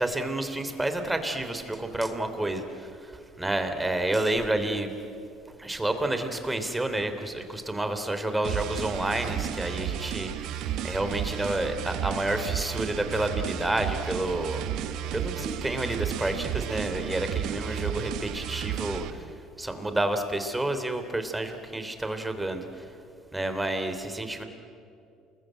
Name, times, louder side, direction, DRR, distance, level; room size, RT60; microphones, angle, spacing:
voice 1, 0.0-4.9 5.5-22.9 23.3-24.4, right 1 dB, 10° right, 8 dB, 3.1 m, -30 dB
sound 1, 8.4-19.1, right 10 dB, 70° right, 1.5 m, -33 dB
28.0 x 21.5 x 9.0 m, 2.6 s
supercardioid pair, 95°, 0 cm